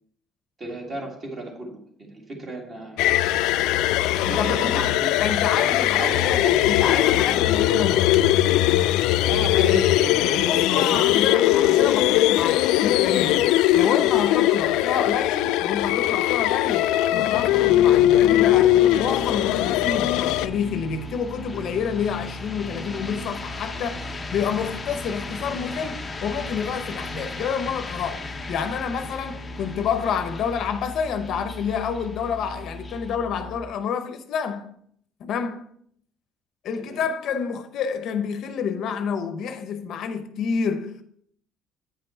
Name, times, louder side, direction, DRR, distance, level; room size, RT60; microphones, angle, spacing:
voice 1, 0.6-3.0 4.0-5.1 5.8-7.0 9.0-11.9 13.3-13.5 36.8-37.0, right 2 dB, 30° right, 2.0 m, -35 dB
sound 1, 3.0-20.5, left 14 dB, 90° left, 0.3 m, -20 dB
voice 2, 4.2-8.2 10.5-13.5 13.7-16.9 17.1-24.0 24.3-28.2 28.5-34.7 35.2-35.7 36.6-41.0, left 7 dB, 55° left, 0.7 m, -28 dB
sound 2, 14.4-33.2, left 3 dB, 15° left, 0.6 m, -39 dB
sound 3, 17.3-33.6, equal, 60° right, 1.6 m, -39 dB
8.8 x 5.4 x 4.4 m
cardioid pair, 155°, 0 cm